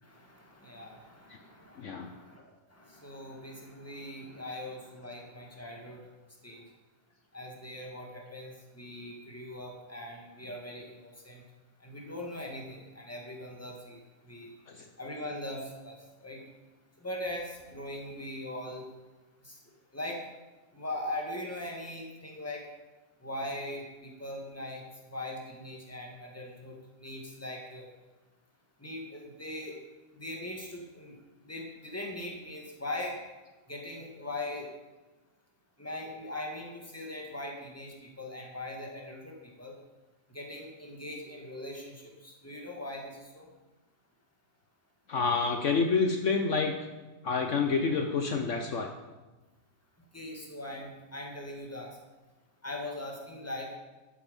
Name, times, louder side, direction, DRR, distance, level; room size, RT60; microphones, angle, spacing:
voice 1, 0.0-6.1 6.4-6.7 7.3-11.4 11.8-14.5 15.0-16.4 17.0-18.8 19.4-19.6 19.9-20.2 20.7-22.6 23.2-27.9 28.8-29.8 30.1-33.2 33.7-34.7 35.8-39.8 40.3-43.5 50.1-52.0 52.6-53.8, left 1 dB, 10° left, 0 dB, 2.0 m, -41 dB
voice 2, 1.8-2.1 14.7-14.8 45.1-46.8 47.2-48.9, left 4 dB, 60° left, 5 dB, 1.2 m, -28 dB
12.0 x 8.9 x 5.4 m, 1.2 s
omnidirectional pair, 1.5 m